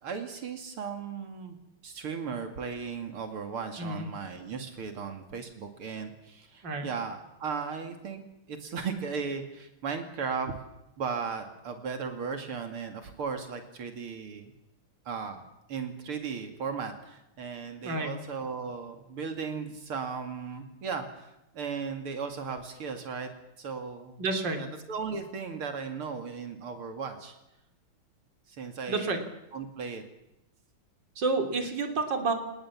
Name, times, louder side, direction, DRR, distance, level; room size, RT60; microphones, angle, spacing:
voice 1, 0.0-1.6 1.8-8.2 8.5-10.6 11.0-14.5 15.1-15.4 15.7-23.3 23.6-24.2 24.6-27.3 28.5-29.3 29.5-30.0, right 5 dB, 85° right, 6 dB, 3.2 m, -36 dB
voice 2, 24.2-24.6 28.9-29.2 31.2-32.3, right 3 dB, 55° right, 6 dB, 3.9 m, -29 dB
30.0 x 19.0 x 7.3 m, 0.87 s
omnidirectional pair, 2.3 m